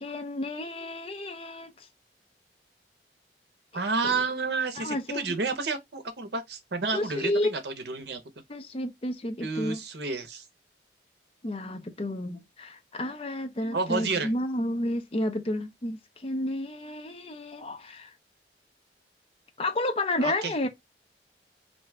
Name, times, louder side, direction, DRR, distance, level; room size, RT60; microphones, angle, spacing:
voice 1, 0.0-1.9 4.0-4.2 4.8-5.4 6.9-7.5 8.5-9.8 11.4-18.1 19.6-20.7, left 1 dB, 30° left, 0.5 m, -31 dB
voice 2, 3.7-8.2 9.4-10.4 13.7-14.3 20.2-20.7, right 4 dB, 70° right, 0.7 m, -30 dB
2.6 x 2.3 x 3.2 m
head